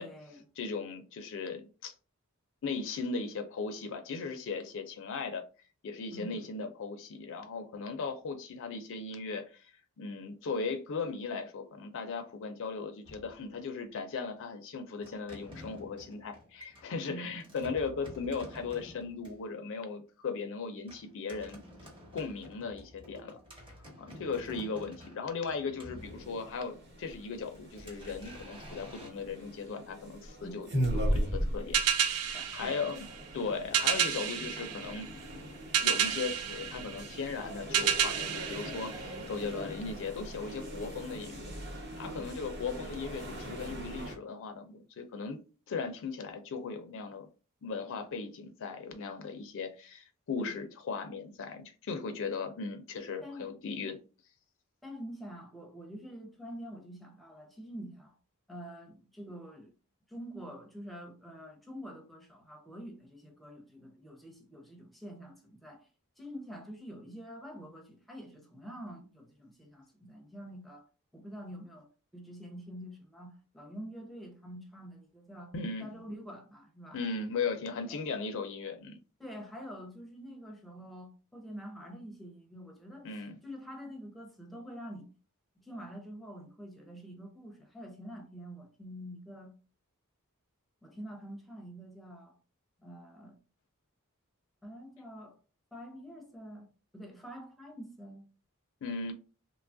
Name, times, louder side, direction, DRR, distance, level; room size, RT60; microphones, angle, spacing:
voice 1, 0.0-0.4 6.1-6.5 17.0-17.4 30.4-30.6 32.3-32.8 34.1-34.4 39.4-39.7 42.2-42.3 50.4-50.6 53.2-53.6 54.8-58.2 58.5-59.7 60.1-65.9 66.2-70.9 71.1-75.5 75.8-77.0 77.9-78.0 79.2-83.1 83.4-85.1 85.6-89.5 90.8-92.4 92.8-93.4 94.6-95.4 95.7-96.7 96.9-98.2, equal, ahead, 0.6 m, -46 dB
voice 2, 0.6-1.9 2.6-5.4 5.8-9.7 10.0-21.6 22.1-23.4 24.0-31.8 32.0-33.0 33.3-35.1 35.8-41.5 42.0-45.4 45.7-47.3 47.6-54.0 75.5-75.9 76.9-79.0 83.0-83.4 98.8-99.1, left 4 dB, 60° left, 0.4 m, -37 dB
sound 1, 13.0-13.9 15.0-19.5 20.9-26.6 27.1-29.1, left 1 dB, 25° right, 0.8 m, -51 dB
sound 2, 26.0-44.1, equal, 50° right, 1.0 m, -39 dB
sound 3, 31.7-39.6, right 8 dB, 75° right, 0.4 m, -31 dB
2.9 x 2.3 x 2.5 m
head